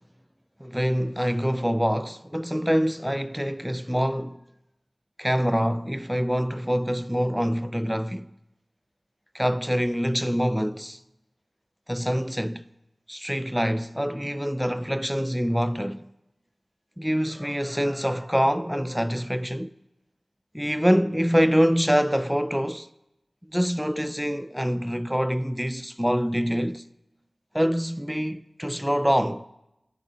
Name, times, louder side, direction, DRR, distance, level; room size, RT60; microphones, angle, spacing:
voice 1, 0.6-4.4 5.2-8.3 9.3-11.0 11.9-12.7 13.1-16.1 17.0-19.7 20.5-22.9 23.5-26.8 27.5-29.4, equal, 5° right, 0.5 m, -25 dB
15.0 x 6.9 x 9.9 m
wide cardioid pair, 55°, 0 cm